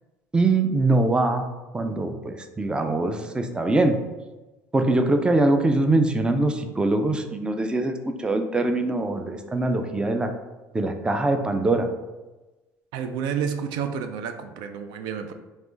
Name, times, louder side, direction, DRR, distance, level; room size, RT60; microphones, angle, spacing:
voice 1, 0.3-1.5 1.7-4.0 4.7-10.3 10.7-11.9, right 2 dB, 10° right, 6 dB, 0.4 m, -23 dB
voice 2, 12.9-15.3, right 7 dB, 70° right, 7 dB, 0.4 m, -30 dB
3.4 x 3.1 x 3.8 m, 1.1 s
supercardioid pair, 90°, 7 cm